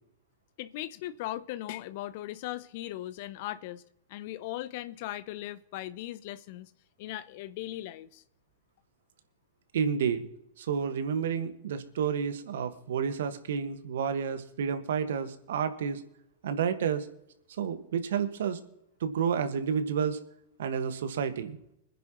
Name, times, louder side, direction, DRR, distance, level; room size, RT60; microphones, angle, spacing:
voice 1, 0.6-3.8 4.1-6.7 7.0-8.2, left 14 dB, 55° left, 0.7 m, -38 dB
voice 2, 9.7-10.3 10.6-16.0 16.4-17.1 17.6-18.6 19.0-20.2 20.6-21.6, right 7 dB, 65° right, 1.6 m, -30 dB
25.0 x 10.0 x 3.1 m
hypercardioid pair, 105°, 0 cm